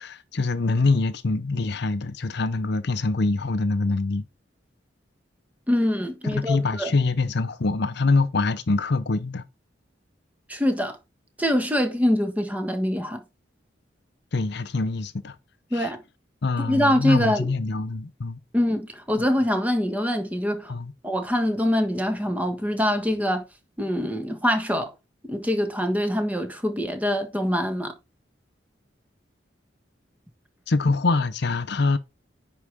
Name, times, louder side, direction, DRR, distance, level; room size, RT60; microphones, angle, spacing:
voice 1, 0.0-4.2 6.2-9.4 14.3-15.4 15.7-15.9 16.4-18.4 20.7-20.9 30.7-32.0, left 3 dB, 65° left, 0.7 m, -24 dB
voice 2, 5.7-6.9 10.5-11.0 11.4-13.2 15.7-16.0 16.6-17.5 18.5-20.7 21.0-23.4 23.8-24.9 25.3-27.9, equal, 10° right, 1.5 m, -24 dB
9.8 x 4.8 x 3.6 m
head